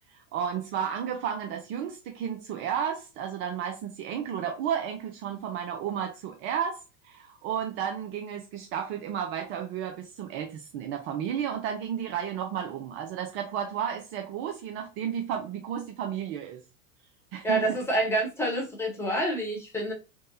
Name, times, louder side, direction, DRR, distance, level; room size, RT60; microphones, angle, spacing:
voice 1, 0.1-16.6 17.3-17.8, right 8 dB, 30° right, 0.4 m, -32 dB
voice 2, 17.4-19.9, right 1 dB, 5° left, 1.1 m, -27 dB
3.5 x 2.1 x 2.6 m
hypercardioid pair, 100°, 41 cm